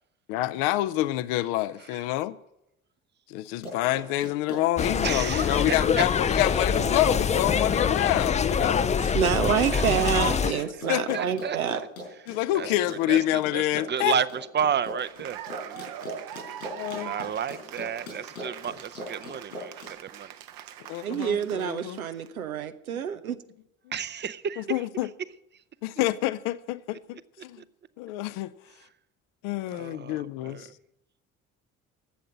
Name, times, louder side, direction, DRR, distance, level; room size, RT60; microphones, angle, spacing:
voice 1, 0.3-2.4 3.3-8.9 9.4-9.5 10.4-11.2 12.3-14.2 16.6-17.1 20.9-22.0 22.9-23.0 23.9-24.0 24.6-25.1 25.8-27.6 28.0-28.5 29.4-30.7, left 15 dB, 60° left, 0.6 m, -28 dB
Run, 3.5-19.9, left 1 dB, 85° left, 4.6 m, -39 dB
sound 1, 4.8-10.5, left 6 dB, 15° left, 0.4 m, -25 dB
voice 2, 5.0-6.0 9.7-9.8 10.9-11.6 12.5-12.7 13.1-13.2 13.5-13.6 13.9-14.3 14.5-15.8 17.0-19.7 20.1-20.3 23.9-24.6 29.7-30.6, right 8 dB, 25° right, 0.6 m, -31 dB
voice 3, 9.1-11.9 21.0-23.4, right 8 dB, 85° right, 0.6 m, -27 dB
Cheering / Applause, 14.7-22.3, right 11 dB, 55° right, 0.9 m, -42 dB
11.5 x 7.7 x 8.5 m
figure-of-eight pair, 50°, 41 cm